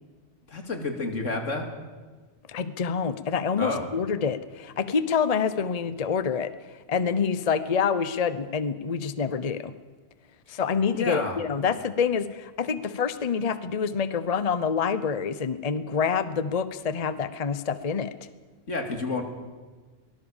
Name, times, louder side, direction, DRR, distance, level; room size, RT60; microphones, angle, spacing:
voice 1, 0.5-1.7 3.6-3.9 11.0-11.4 18.7-19.2, left 3 dB, 90° left, 4 dB, 3.0 m, -29 dB
voice 2, 2.5-9.7 10.5-18.1, left 6 dB, 35° left, 13 dB, 0.8 m, -27 dB
23.0 x 19.0 x 7.2 m, 1.4 s
omnidirectional pair, 1.2 m